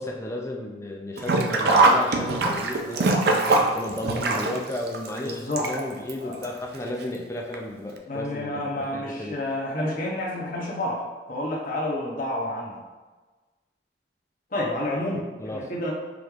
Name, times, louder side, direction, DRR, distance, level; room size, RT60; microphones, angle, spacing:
voice 1, 0.0-8.5 8.9-9.4 15.1-15.6, left 1 dB, 15° left, 0 dB, 0.4 m, -33 dB
Sink (filling or washing), 1.2-6.1 6.4-6.5 7.5-7.6 8.0-8.1, right 2 dB, 55° right, 0.4 m, -22 dB
voice 2, 5.2-5.7 6.2-6.4 8.1-11.0 11.3-12.8 14.5-15.9, left 1 dB, 45° left, -3 dB, 0.8 m, -29 dB
5.1 x 3.1 x 2.4 m, 1.3 s
head